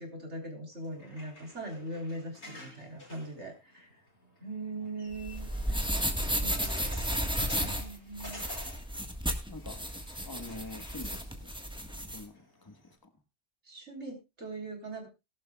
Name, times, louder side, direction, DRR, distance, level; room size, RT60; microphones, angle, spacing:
voice 1, 0.0-3.9 4.4-5.8 6.4-7.3 7.6-8.4 13.6-15.1, right 2 dB, 80° right, 3 dB, 3.9 m, -41 dB
sound 1, 0.7-12.9, left 1 dB, 75° left, 5.8 m, -51 dB
sound 2, 5.1-12.2, equal, 5° right, 1.3 m, -33 dB
voice 2, 9.5-9.8 10.2-11.5 12.1-13.1, left 2 dB, 20° left, 8 dB, 1.3 m, -47 dB
18.5 x 11.5 x 2.3 m, 0.24 s
omnidirectional pair, 1.1 m